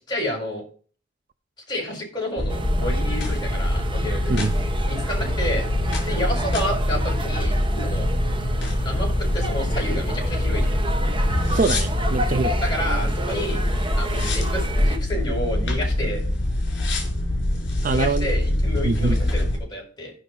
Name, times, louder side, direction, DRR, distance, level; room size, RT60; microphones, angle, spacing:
voice 1, 0.1-0.6 1.7-4.5 4.9-7.5 7.8-8.1 8.8-10.7 12.6-13.6 13.9-16.2 17.8-20.1, left 1 dB, 25° left, 7.2 m, -30 dB
sound 1, 2.4-19.6, left 1 dB, 65° left, 4.4 m, -24 dB
sound 2, 2.5-15.0, right 1 dB, 25° right, 1.2 m, -31 dB
voice 2, 11.5-12.6 17.8-18.3 18.8-19.2, right 3 dB, 45° right, 0.5 m, -23 dB
16.0 x 5.8 x 4.6 m
head